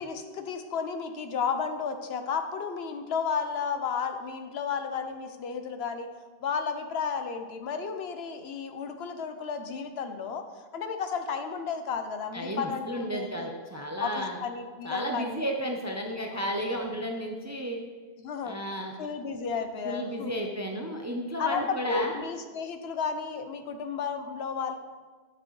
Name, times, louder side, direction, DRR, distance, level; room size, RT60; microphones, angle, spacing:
voice 1, 0.0-6.1 6.4-13.5 14.0-15.4 16.3-16.9 18.2-18.6 19.0-20.4 21.4-24.7, left 6 dB, 75° left, 7 dB, 0.9 m, -33 dB
voice 2, 12.3-14.4 14.8-17.8 18.4-18.9 19.8-22.2, equal, 25° right, 2 dB, 0.4 m, -33 dB
9.1 x 5.9 x 3.1 m, 1.4 s
omnidirectional pair, 1.1 m